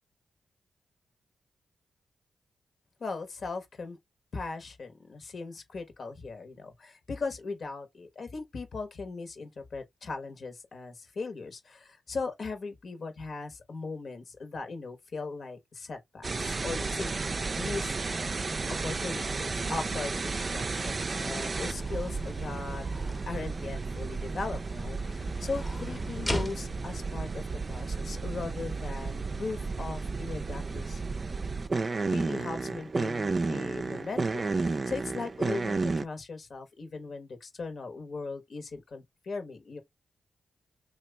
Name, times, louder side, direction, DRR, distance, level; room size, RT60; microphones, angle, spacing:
voice 1, 3.0-4.0 4.3-17.9 18.8-22.8 23.2-31.1 32.1-39.8, left 4 dB, 60° left, 1.1 m, -38 dB
sound 1, 16.2-36.0, right 3 dB, 45° right, 0.4 m, -32 dB
sound 2, 21.2-28.7, left 1 dB, 20° left, 0.8 m, -41 dB
3.0 x 2.4 x 3.3 m
cardioid pair, 50°, 0 cm